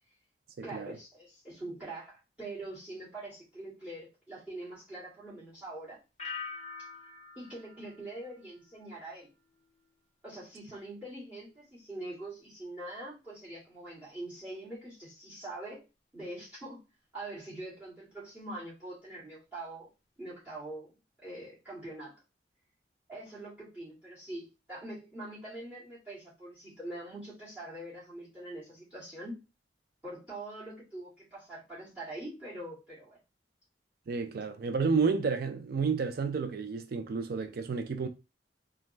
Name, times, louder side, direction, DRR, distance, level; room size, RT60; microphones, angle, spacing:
voice 1, 0.6-6.0 7.4-9.3 10.2-15.8 16.1-16.8 17.1-19.9 20.2-20.9 21.2-22.1 23.1-29.4 30.0-33.2, right 1 dB, 10° right, 2.2 m, -43 dB
sound 1, 6.2-9.0 9.4-9.8, left 5 dB, 40° left, 0.5 m, -45 dB
voice 2, 34.1-38.1, right 5 dB, 60° right, 0.4 m, -30 dB
4.0 x 2.3 x 3.2 m
head